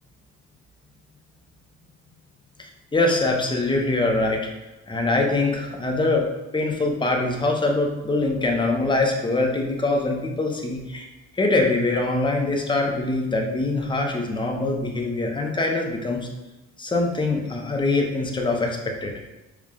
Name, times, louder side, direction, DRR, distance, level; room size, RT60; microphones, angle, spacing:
voice 1, 2.6-4.4 4.9-6.3 6.5-11.1 11.3-16.2 16.8-19.1, left 2 dB, 15° left, 1 dB, 0.7 m, -23 dB
4.7 x 2.4 x 3.5 m, 1.0 s
cardioid pair, 90°, 30 cm